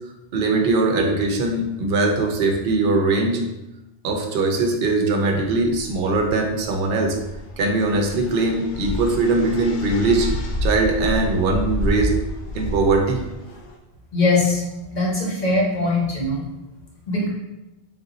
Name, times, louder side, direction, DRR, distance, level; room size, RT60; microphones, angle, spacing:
voice 1, 0.3-3.4 4.0-7.2 7.6-10.3 10.6-12.1 12.5-13.2, right 3 dB, 60° right, 2 dB, 0.8 m, -21 dB
sound 1, 5.4-13.7, left 1 dB, 80° left, 0.9 m, -29 dB
voice 2, 14.1-14.6 14.9-16.4 17.1-17.3, left 2 dB, 45° left, -3 dB, 1.1 m, -21 dB
3.9 x 2.6 x 3.8 m, 0.97 s
omnidirectional pair, 1.2 m